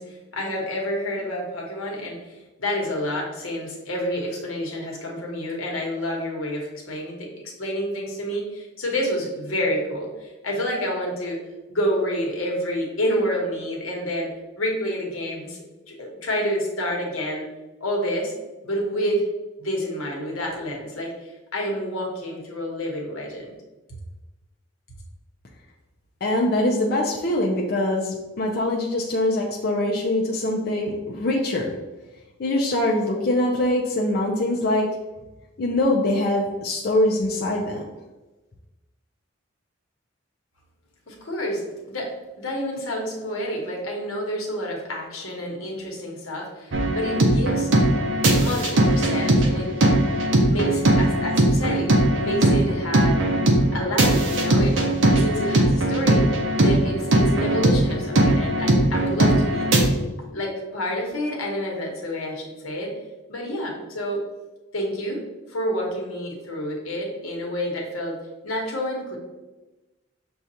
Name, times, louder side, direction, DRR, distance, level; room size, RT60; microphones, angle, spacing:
voice 1, 0.0-7.3 7.6-11.4 11.7-15.6 15.9-17.5 17.8-18.3 18.6-19.3 19.6-23.5 41.1-47.7 48.3-49.7 50.3-53.2 53.7-54.8 55.1-56.3 56.6-59.7 60.3-62.9 63.3-64.2 64.7-65.2 65.5-68.2 68.4-69.2, equal, 90° left, -1 dB, 1.1 m, -28 dB
voice 2, 26.2-31.7 32.4-34.9 35.6-37.8, left 1 dB, 50° left, -2 dB, 0.4 m, -23 dB
sound 1, 46.7-59.9, right 1 dB, 65° right, 0.7 m, -20 dB
6.2 x 2.3 x 2.7 m, 1.1 s
head